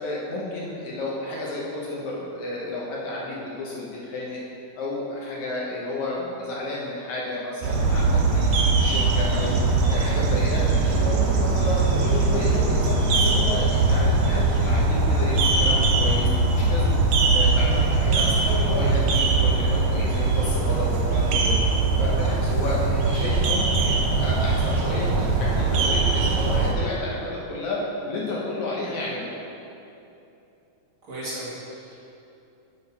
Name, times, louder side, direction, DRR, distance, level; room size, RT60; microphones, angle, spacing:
voice 1, 0.0-4.4 4.8-9.5 9.9-10.6 10.9-17.0 17.3-21.7 22.0-27.8 28.1-29.3, left 2 dB, 70° left, -5 dB, 2.2 m, -31 dB
sound 1, 7.6-26.7, right 3 dB, 70° right, 2.2 m, -21 dB
voice 2, 31.0-32.1, right 1 dB, 45° right, -9 dB, 2.8 m, -36 dB
6.7 x 6.2 x 5.5 m, 2.8 s
omnidirectional pair, 3.8 m